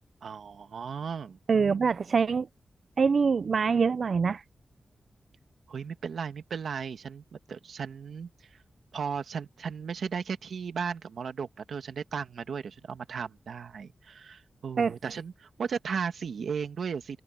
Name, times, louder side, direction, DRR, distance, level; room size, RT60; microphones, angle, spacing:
voice 1, 0.2-1.4 5.7-8.6 8.9-17.2, right 6 dB, 85° right, 1.6 m, -36 dB
voice 2, 1.5-2.5 3.0-4.4 14.8-14.9, right 5 dB, 55° right, 0.4 m, -24 dB
wide cardioid pair, 175°, 0 cm